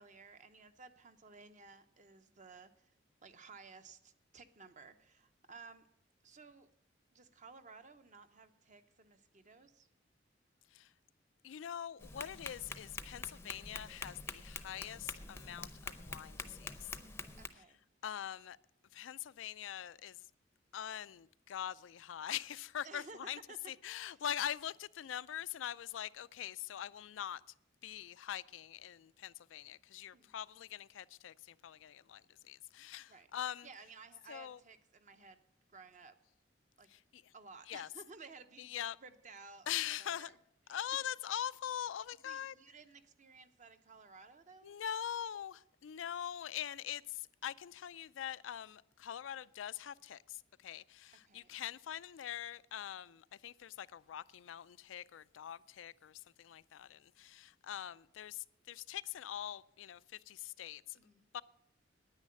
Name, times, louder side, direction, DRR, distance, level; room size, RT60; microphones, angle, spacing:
voice 1, 0.0-2.9 3.2-5.9 6.2-6.7 7.1-9.9 17.4-17.8 22.8-23.2 23.5-23.6 24.0-24.2 30.1-30.3 33.1-33.3 33.6-35.4 35.7-36.1 36.8-36.9 37.3-38.7 39.0-39.7 40.0-40.3 42.2-44.7 51.2-51.6 61.0-61.3, right 4 dB, 40° right, 0.8 m, -56 dB
voice 2, 11.4-16.9 17.6-17.7 18.0-18.6 18.9-20.3 20.7-23.4 23.7-27.4 27.8-33.7 34.3-34.6 36.9-37.3 37.7-37.9 38.6-39.0 39.7-40.3 40.7-42.5 44.6-61.4, left 10 dB, 85° left, 0.4 m, -43 dB
Tap, 12.0-17.5, left 3 dB, 15° left, 0.6 m, -46 dB
9.7 x 9.4 x 7.5 m
head